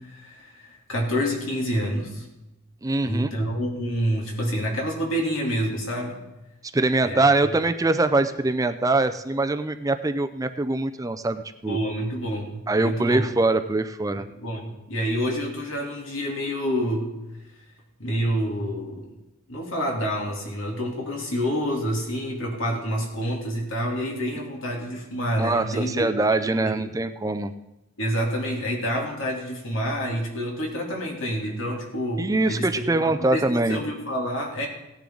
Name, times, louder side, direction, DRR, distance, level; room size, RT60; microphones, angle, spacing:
voice 1, 0.0-2.3 3.0-6.2 7.0-7.3 11.7-13.3 14.2-17.1 18.0-19.1 19.5-26.1 26.6-26.7 28.0-34.7, equal, 75° left, -1 dB, 2.9 m, -28 dB
voice 2, 2.8-3.3 6.7-11.8 12.7-14.3 25.4-27.5 32.2-33.8, right 2 dB, 15° right, 9 dB, 0.4 m, -23 dB
17.0 x 10.0 x 3.9 m, 0.96 s
head